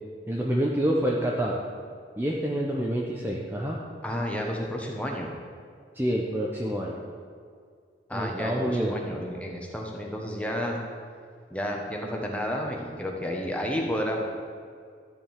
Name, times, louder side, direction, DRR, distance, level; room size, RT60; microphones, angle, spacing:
voice 1, 0.3-1.6 2.2-3.8 5.9-7.0 8.1-8.9, right 1 dB, 10° right, -3 dB, 1.0 m, -27 dB
voice 2, 4.0-5.3 8.1-10.8 11.5-14.2, equal, 5° left, 0 dB, 1.5 m, -31 dB
13.5 x 5.4 x 9.1 m, 2.2 s
head